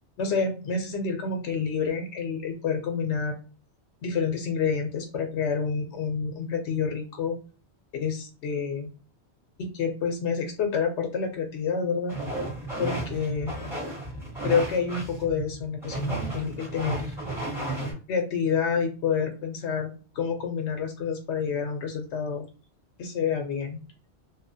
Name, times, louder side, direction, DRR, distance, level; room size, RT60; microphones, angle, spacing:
voice 1, 0.2-3.4 4.0-7.4 8.0-8.9 9.6-12.1 12.8-13.5 14.4-17.1 18.1-19.9 20.2-22.5 23.0-23.8, left 6 dB, 85° left, 4 dB, 0.9 m, -28 dB
sound 1, 12.1-17.9, right 2 dB, ahead, 1.2 m, -33 dB
2.7 x 2.4 x 2.6 m, 0.35 s
omnidirectional pair, 1.1 m